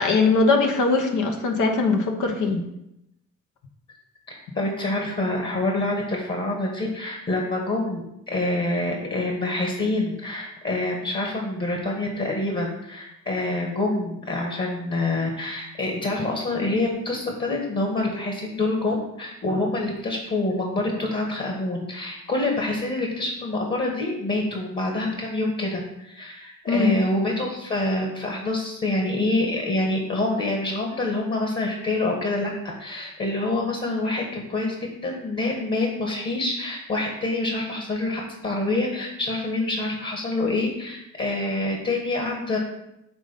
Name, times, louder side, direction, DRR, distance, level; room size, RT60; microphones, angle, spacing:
voice 1, 0.0-2.6 26.7-26.9, left 3 dB, 75° left, 3 dB, 1.1 m, -21 dB
voice 2, 4.5-32.5 32.8-34.7 35.0-42.6, left 2 dB, 35° left, 0 dB, 1.5 m, -26 dB
6.1 x 3.8 x 5.4 m, 0.84 s
cardioid pair, 90°, 30 cm